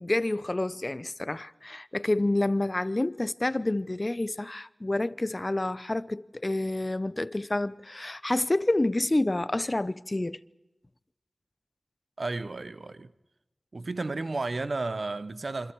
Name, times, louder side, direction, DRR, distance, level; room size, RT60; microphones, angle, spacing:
voice 1, 0.0-10.4, left 2 dB, 35° left, 0.8 m, -28 dB
voice 2, 12.2-13.1 13.7-15.7, right 3 dB, 65° right, 1.0 m, -32 dB
28.0 x 25.5 x 4.8 m
cardioid pair, 40°, 0 cm